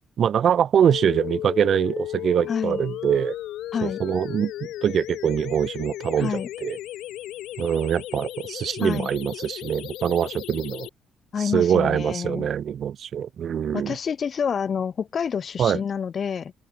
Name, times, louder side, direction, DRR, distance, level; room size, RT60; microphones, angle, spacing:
voice 1, 0.2-3.3 3.8-4.5 4.8-6.8 7.6-10.9 11.4-14.0 15.6-15.8, right 8 dB, 60° right, 0.4 m, -23 dB
sound 1, 0.9-10.9, left 14 dB, 85° left, 1.2 m, -35 dB
voice 2, 2.5-2.8 3.7-4.0 6.2-6.5 8.8-9.1 11.3-12.5 13.7-16.5, left 7 dB, 50° left, 0.9 m, -28 dB
open air
cardioid pair, 90°, 0 cm